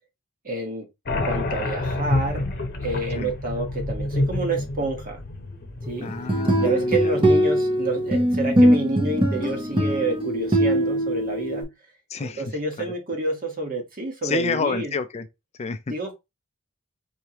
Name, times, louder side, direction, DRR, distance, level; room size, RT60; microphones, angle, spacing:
voice 1, 0.4-0.9 1.2-2.4 2.8-5.2 5.9-6.1 6.6-11.7 12.2-14.9 15.9-16.1, right 2 dB, 45° right, 1.4 m, -29 dB
sound 1, 1.1-6.3, left 2 dB, 50° left, 0.9 m, -28 dB
voice 2, 6.0-7.1 12.1-12.9 14.2-15.3 15.6-15.9, left 5 dB, 30° left, 0.4 m, -29 dB
sound 2, 6.1-11.6, right 1 dB, 25° right, 0.9 m, -21 dB
4.6 x 3.2 x 2.9 m
head